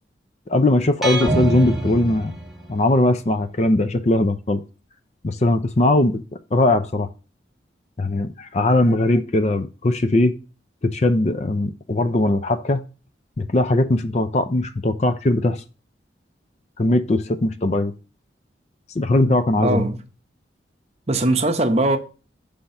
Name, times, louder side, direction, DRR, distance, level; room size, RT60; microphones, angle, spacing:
voice 1, 0.5-2.3 2.7-4.6 5.2-6.2 6.5-7.1 8.0-10.3 10.9-12.8 13.4-15.6 16.8-17.9 19.0-19.8, left 2 dB, 40° left, 0.5 m, -19 dB
sound 1, 1.0-3.0, right 1 dB, ahead, 1.0 m, -25 dB
voice 2, 19.6-20.0 21.1-22.0, right 2 dB, 35° right, 0.7 m, -20 dB
6.4 x 3.5 x 5.6 m
head